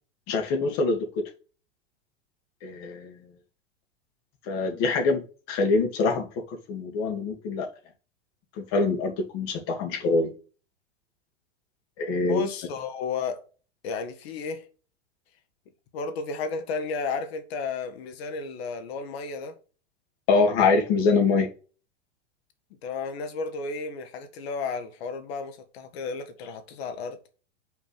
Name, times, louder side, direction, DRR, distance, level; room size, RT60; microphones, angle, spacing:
voice 1, 0.3-1.1 2.6-3.1 4.5-7.7 8.7-10.3 12.0-12.4 20.3-21.5, left 4 dB, 45° left, 2.4 m, -24 dB
voice 2, 12.3-13.4 13.8-14.6 15.9-19.6 22.8-27.2, left 4 dB, 60° left, 1.7 m, -33 dB
6.0 x 4.5 x 6.0 m
hypercardioid pair, 115°, 35 cm